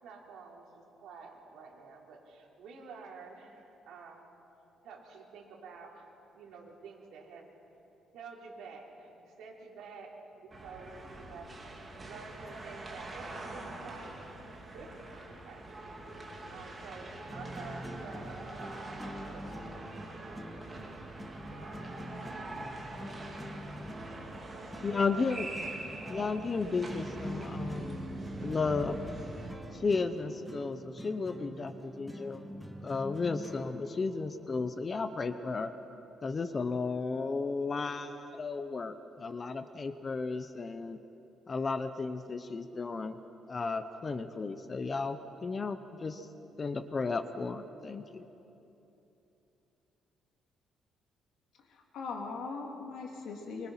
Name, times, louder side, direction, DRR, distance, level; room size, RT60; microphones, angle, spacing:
voice 1, 0.0-4.3 4.8-7.5 8.1-14.2 14.7-16.0 16.3-20.4 21.3-21.8 22.1-23.7 24.5-25.5 26.2-26.3, right 4 dB, 75° right, -1 dB, 3.9 m, -50 dB
sound 1, 10.5-29.5, right 2 dB, 20° right, 2.9 m, -44 dB
Acoustic Fun, 15.9-34.7, equal, ahead, 1.3 m, -45 dB
voice 2, 24.8-25.5 26.1-28.1 28.4-29.0 29.7-32.4 32.8-35.7 36.2-41.0 41.5-43.2 43.5-46.3 46.6-48.3, left 4 dB, 25° left, 10 dB, 0.7 m, -34 dB
voice 3, 51.7-53.7, left 4 dB, 65° left, 1 dB, 3.0 m, -40 dB
24.5 x 24.5 x 5.8 m, 3.0 s
cardioid pair, 165°, 0 cm